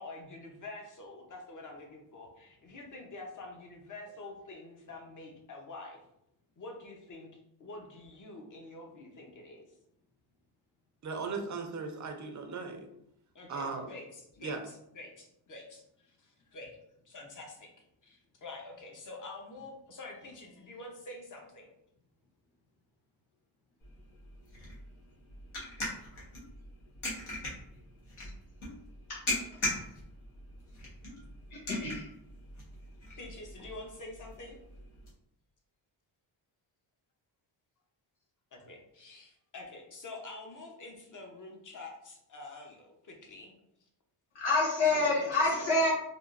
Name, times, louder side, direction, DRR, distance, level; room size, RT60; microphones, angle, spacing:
voice 1, 0.0-6.0 6.6-7.3 7.6-9.7 13.3-16.8 17.0-17.7 18.0-21.7 28.2-28.3 33.2-34.6 38.5-43.5 44.9-45.8, left 2 dB, 40° left, 1 dB, 0.9 m, -47 dB
voice 2, 11.0-12.9 13.5-13.9 14.4-14.6, right 4 dB, 35° right, 4 dB, 0.6 m, -37 dB
sound 1, 23.8-35.1, left 2 dB, 75° left, 1.4 m, -41 dB
voice 3, 31.5-32.1 44.3-45.9, left 2 dB, 90° left, -4 dB, 1.0 m, -27 dB
3.5 x 2.5 x 2.5 m, 0.76 s
cardioid pair, 80°, 48 cm